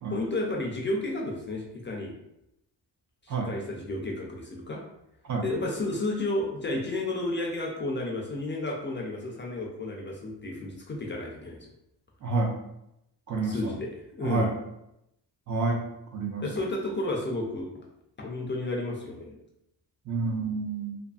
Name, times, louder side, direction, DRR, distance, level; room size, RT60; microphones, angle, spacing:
voice 1, 0.1-2.1 3.4-4.8 5.4-11.7 13.5-14.5 16.4-17.7 18.2-19.4, left 2 dB, 30° left, -1 dB, 0.4 m, -32 dB
voice 2, 12.2-12.6 13.3-13.7 14.2-14.5 15.5-15.8 16.1-16.7 20.1-21.0, right 3 dB, 45° right, 1 dB, 0.5 m, -29 dB
2.5 x 2.5 x 2.3 m, 0.84 s
cardioid pair, 135°, 42 cm